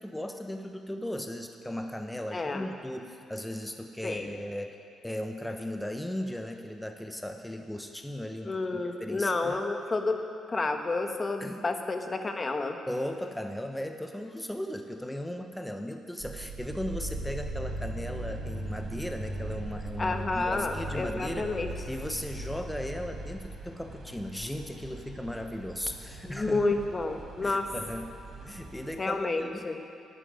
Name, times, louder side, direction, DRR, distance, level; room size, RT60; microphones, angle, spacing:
voice 1, 0.0-4.7 5.0-9.6 11.4-11.6 12.9-21.5 21.9-26.6 27.4-28.1 28.4-29.7, left 1 dB, 5° left, 5 dB, 1.0 m, -37 dB
voice 2, 2.3-2.7 4.0-4.3 8.4-10.2 10.5-12.8 20.0-21.7 26.3-27.7 29.0-29.8, left 3 dB, 30° left, 5 dB, 1.3 m, -30 dB
sound 1, 16.2-24.0, right 2 dB, 80° right, 3.0 m, -38 dB
sound 2, 17.6-29.0, right 3 dB, 55° right, 2.6 m, -47 dB
10.5 x 10.5 x 9.3 m, 2.7 s
cardioid pair, 90°, 0 cm